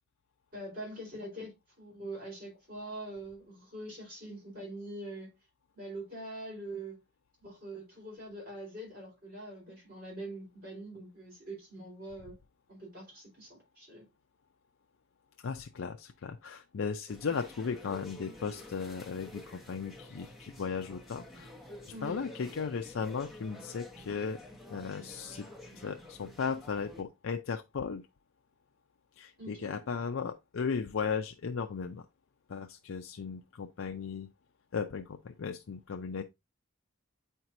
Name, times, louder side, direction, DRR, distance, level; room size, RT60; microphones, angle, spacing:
voice 1, 0.5-5.3 5.7-7.0 7.4-12.4 12.7-14.1 21.9-22.2 29.4-29.8, right 1 dB, 45° right, 4.1 m, -44 dB
voice 2, 15.4-21.5 22.0-24.4 24.7-25.5 25.8-28.0 29.2-32.1 32.5-34.3 34.7-36.2, left 5 dB, 75° left, 0.4 m, -36 dB
sound 1, 17.1-27.0, left 2 dB, ahead, 1.0 m, -50 dB
8.1 x 4.5 x 2.6 m
head